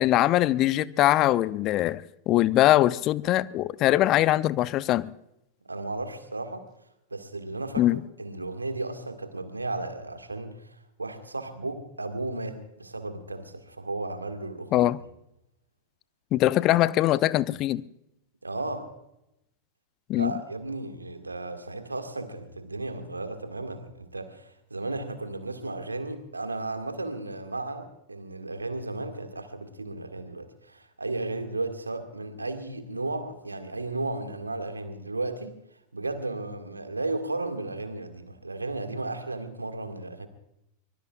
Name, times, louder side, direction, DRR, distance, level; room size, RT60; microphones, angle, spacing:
voice 1, 0.0-5.1 7.8-8.0 14.7-15.0 16.3-17.8 20.1-20.3, left 14 dB, 35° left, 0.6 m, -22 dB
voice 2, 5.6-6.7 7.1-14.9 18.4-18.9 20.2-35.5 35.9-40.3, right 2 dB, 80° right, 2.0 m, -34 dB
24.0 x 22.0 x 2.5 m
figure-of-eight pair, 90°, 0 cm